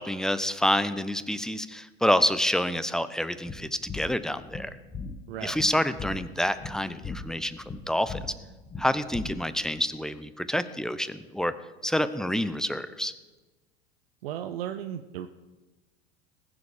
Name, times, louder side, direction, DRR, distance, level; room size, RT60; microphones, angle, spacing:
voice 1, 0.0-4.8 5.4-8.2 8.8-11.5 11.8-13.1, left 1 dB, ahead, 13 dB, 0.8 m, -28 dB
sound 1, 3.5-9.7, left 4 dB, 20° left, 1.5 m, -40 dB
voice 2, 5.3-5.6 14.2-15.3, right 10 dB, 70° right, 8 dB, 0.8 m, -35 dB
20.0 x 7.2 x 5.1 m, 1.2 s
hypercardioid pair, 80°, 31 cm